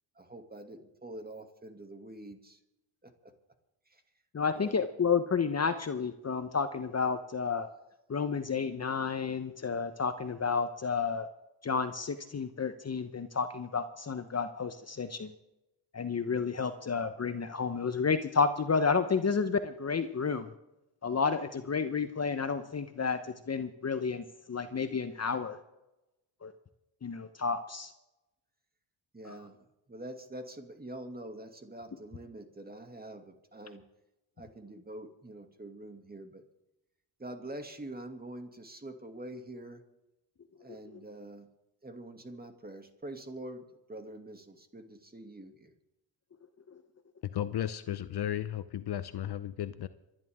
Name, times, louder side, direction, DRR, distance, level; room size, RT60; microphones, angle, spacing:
voice 1, 0.2-2.6 3.0-3.3 3.9-4.0 4.5-4.7 29.1-33.8 34.4-36.4 37.2-39.8 40.6-41.5 41.8-45.7, right 1 dB, 20° right, 5 dB, 2.5 m, -45 dB
voice 2, 4.3-7.7 8.1-11.3 11.6-15.3 15.9-20.5 21.0-25.6 26.4-26.5 27.0-27.9 29.2-29.4, left 5 dB, 35° left, 10 dB, 1.0 m, -31 dB
voice 3, 47.3-49.9, left 11 dB, 55° left, 14 dB, 0.8 m, -34 dB
26.0 x 11.0 x 3.7 m, 0.92 s
supercardioid pair, 65°, 47 cm